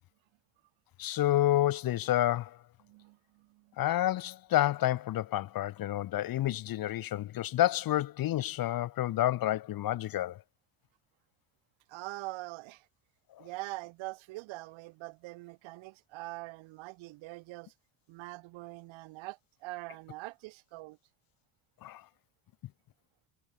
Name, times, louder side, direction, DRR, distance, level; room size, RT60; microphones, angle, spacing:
voice 1, 1.0-2.6 3.8-10.4 13.4-13.5 21.8-22.0, left 13 dB, 45° left, 1.5 m, -29 dB
voice 2, 2.8-3.7 11.9-12.9 13.4-17.7 18.1-21.0, right 21 dB, 65° right, 6.8 m, -43 dB
cardioid pair, 130°, 49 cm